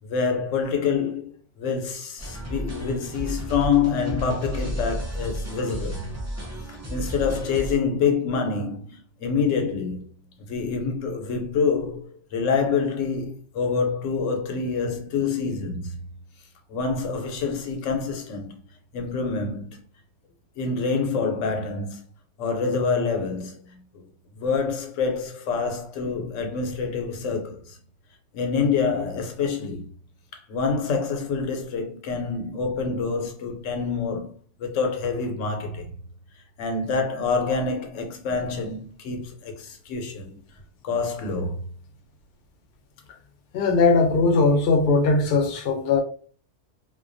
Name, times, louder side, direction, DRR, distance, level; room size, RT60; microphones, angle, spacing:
voice 1, 0.0-1.3 1.6-6.0 6.7-10.0 10.4-16.0 16.7-18.6 18.9-19.8 20.6-22.0 22.4-24.1 24.3-27.8 28.3-29.8 30.3-34.3 34.6-35.9 36.6-40.4 40.8-41.6, left 5 dB, 85° left, 1.0 m, -26 dB
sound 1, 2.2-7.8, equal, 25° right, 0.4 m, -33 dB
voice 2, 43.5-46.0, left 3 dB, 65° left, 0.7 m, -19 dB
2.3 x 2.2 x 2.5 m
omnidirectional pair, 1.2 m